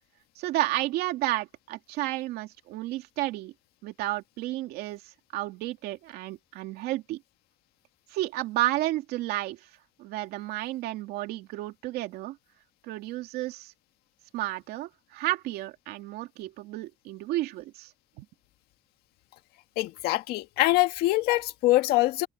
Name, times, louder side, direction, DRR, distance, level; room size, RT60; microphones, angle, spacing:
voice 1, 0.4-3.5 3.8-5.0 5.3-7.2 8.1-9.6 10.0-12.4 12.8-13.7 14.3-17.9 18.2-18.3, right 16 dB, 75° right, 2.7 m, -31 dB
voice 2, 19.8-22.3, left 18 dB, 70° left, 1.8 m, -24 dB
cardioid pair, 135°, 17 cm